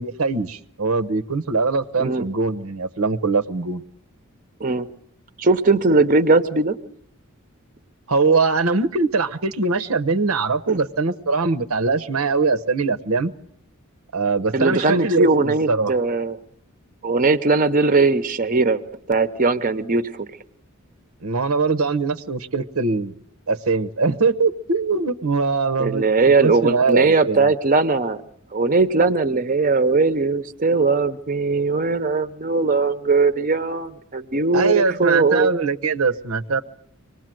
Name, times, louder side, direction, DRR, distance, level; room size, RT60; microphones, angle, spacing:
voice 1, 0.0-3.8 8.1-13.3 14.1-15.9 21.2-23.1 23.5-27.5 34.5-36.6, right 4 dB, 80° right, 0.9 m, -22 dB
voice 2, 5.4-6.8 10.7-10.8 14.5-16.4 17.0-18.8 19.1-20.3 25.8-28.2 28.5-35.5, right 3 dB, 40° right, 0.9 m, -19 dB
25.0 x 19.5 x 7.7 m
head